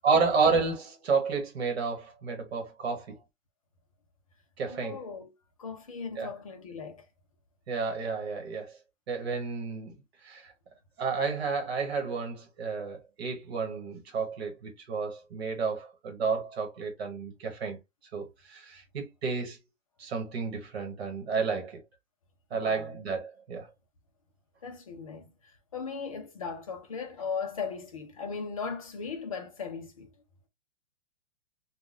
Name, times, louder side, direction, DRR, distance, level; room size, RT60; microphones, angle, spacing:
voice 1, 0.0-3.2 4.6-5.0 6.2-6.3 7.7-8.8 9.1-9.9 10.2-10.5 11.0-17.8 18.1-19.6 20.0-21.8 22.5-23.7, right 5 dB, 55° right, 1.2 m, -31 dB
voice 2, 4.7-5.3 5.6-7.0 22.5-23.0 24.6-30.1, left 5 dB, 30° left, 0.4 m, -38 dB
3.7 x 2.2 x 2.5 m
hypercardioid pair, 175°, 37 cm